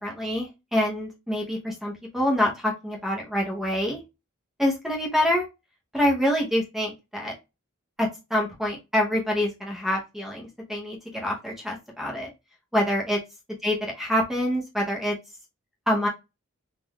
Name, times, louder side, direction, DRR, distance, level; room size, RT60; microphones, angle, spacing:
voice 1, 0.0-4.0 4.6-5.4 5.9-7.3 8.0-12.3 12.7-13.2 13.6-15.2 15.9-16.1, left 1 dB, ahead, -2 dB, 0.7 m, -26 dB
3.8 x 2.4 x 3.0 m, 0.24 s
head